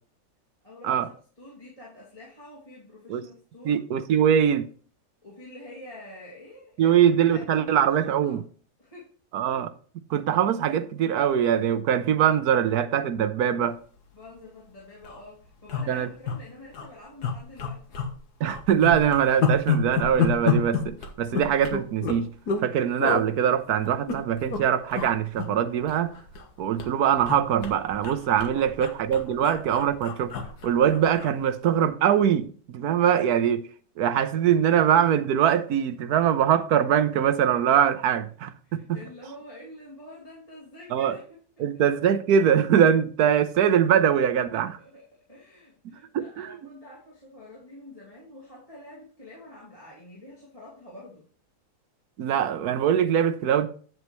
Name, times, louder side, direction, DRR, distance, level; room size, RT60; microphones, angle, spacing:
voice 1, 0.6-3.9 5.2-8.4 8.8-9.1 14.1-17.8 28.6-28.7 29.4-29.5 38.6-41.8 44.8-45.0 45.3-51.3, left 1 dB, 20° left, 2.7 m, -47 dB
voice 2, 3.6-4.6 6.8-8.4 9.3-9.7 10.1-13.8 15.9-16.1 18.4-22.3 22.6-26.2 26.6-30.3 30.6-33.7 34.0-38.8 40.9-41.1 41.6-44.8 45.8-46.5 52.2-53.7, right 9 dB, 80° right, 1.3 m, -22 dB
sound 1, 14.2-14.4 14.7-14.8 15.0-15.2 15.7-16.4 16.7-16.9 17.2-18.1 18.4-22.7 23.0-23.2 23.8-24.6 24.9-25.1 25.4-26.5 26.8-31.3 31.7-31.9, left 6 dB, 90° left, 1.8 m, -29 dB
9.4 x 7.8 x 3.1 m
omnidirectional pair, 1.6 m